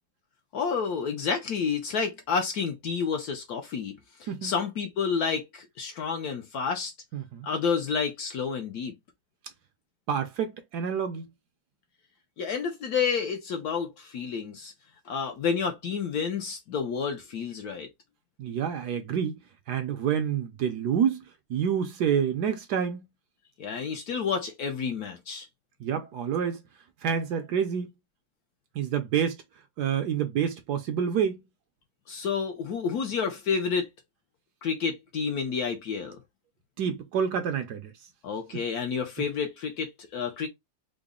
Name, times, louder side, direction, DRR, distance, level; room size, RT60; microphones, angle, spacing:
voice 1, 0.5-6.9 7.4-8.9 12.4-14.7 15.1-17.9 23.6-25.5 32.1-33.9 34.6-36.2 38.2-40.5, left 6 dB, 65° left, 1.0 m, -30 dB
voice 2, 7.1-7.5 10.1-11.3 18.4-19.4 19.7-21.2 21.5-23.0 25.8-26.6 27.0-27.9 28.7-29.4 29.8-31.4 36.8-37.9 38.5-38.6, right 8 dB, 70° right, 1.0 m, -28 dB
3.8 x 2.0 x 3.6 m
omnidirectional pair, 2.0 m